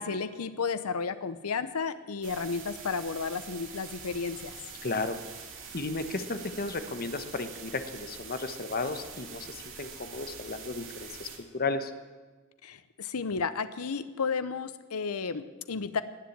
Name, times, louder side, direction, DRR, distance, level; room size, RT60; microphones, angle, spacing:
voice 1, 0.0-4.5 12.6-16.0, left 5 dB, 85° left, 13 dB, 0.7 m, -33 dB
sound 1, 2.2-11.4, right 6 dB, 60° right, 2.6 m, -45 dB
voice 2, 4.8-5.2 5.7-11.9, left 3 dB, 45° left, 9 dB, 1.1 m, -34 dB
19.0 x 7.5 x 8.7 m, 1.3 s
head